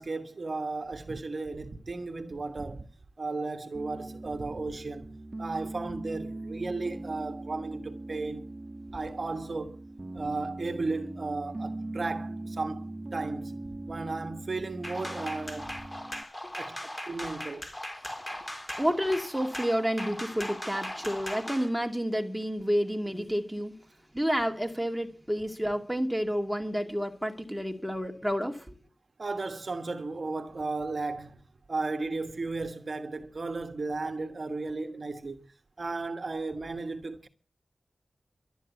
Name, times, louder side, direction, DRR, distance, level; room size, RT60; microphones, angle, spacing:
voice 1, 0.0-2.9 3.2-8.5 8.9-9.8 10.1-13.6 13.9-15.7 16.6-16.8 17.1-17.7 29.2-31.4 31.7-35.5 35.8-37.3, right 3 dB, 50° right, 1.3 m, -35 dB
Piano, 3.7-16.2, right 2 dB, 35° right, 1.4 m, -41 dB
sound 1, 14.8-21.7, left 1 dB, 15° left, 3.7 m, -39 dB
voice 2, 18.8-23.7 24.1-28.8, equal, 5° right, 2.5 m, -30 dB
12.0 x 10.0 x 8.1 m
wide cardioid pair, 65°, 0 cm